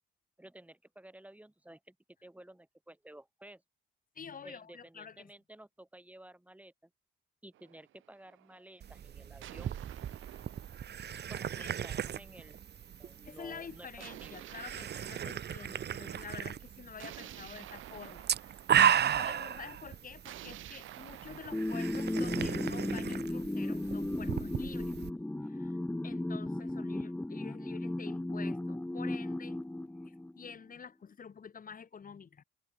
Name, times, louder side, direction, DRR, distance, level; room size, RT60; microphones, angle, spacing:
voice 1, 0.4-1.9 2.2-3.6 4.4-6.9 7.4-9.7 11.3-12.6 13.0-13.9 14.2-14.5, right 1 dB, 5° right, 4.8 m, -53 dB
voice 2, 4.2-5.3 10.2-10.4 11.6-11.7 13.2-25.8 26.0-29.6 30.0-32.4, left 6 dB, 45° left, 5.5 m, -49 dB
sound 1, 7.5-8.6 9.4-12.0 14.0-16.1 17.0-19.3 20.2-24.0, right 13 dB, 80° right, 1.8 m, -52 dB
sound 2, 8.8-25.1, right 9 dB, 55° right, 1.9 m, -35 dB
sound 3, 21.5-30.5, left 1 dB, 10° left, 1.2 m, -35 dB
cardioid pair, 90°, 20 cm